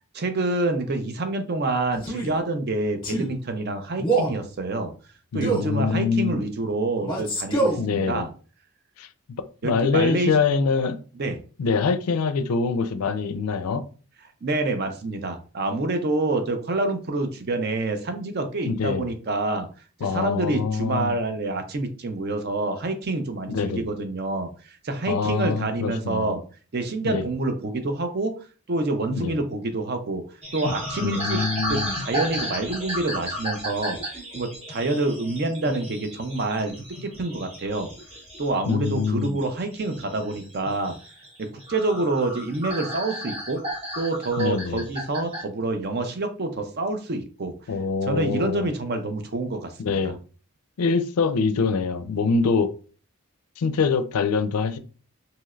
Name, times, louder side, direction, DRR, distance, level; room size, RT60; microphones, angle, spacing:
voice 1, 0.1-4.9 5.3-8.3 9.6-10.4 11.2-11.4 14.4-19.7 20.0-26.4 26.7-28.4 28.7-30.2 30.5-31.4 31.7-34.0 34.3-36.8 37.0-37.9 38.4-41.0 41.4-43.7 44.0-47.6 48.0-50.0, right 2 dB, 45° right, 0.5 m, -27 dB
Male speech man speaking, 2.0-2.3 3.0-3.3 4.0-4.4 5.4-5.7 7.0-7.8, right 2 dB, 20° left, 0.9 m, -25 dB
voice 2, 5.3-6.4 7.8-8.3 9.0-9.1 9.4-11.0 11.6-13.8 18.7-19.1 20.0-21.1 23.5-23.9 25.1-26.3 27.0-27.3 29.1-29.4 31.0-31.9 38.7-39.4 44.4-44.9 47.7-48.7 49.8-50.2 50.8-52.7 53.6-54.8, left 5 dB, 85° left, 0.4 m, -24 dB
sound 1, 30.4-45.4, equal, 25° right, 0.8 m, -34 dB
3.1 x 2.8 x 2.4 m
head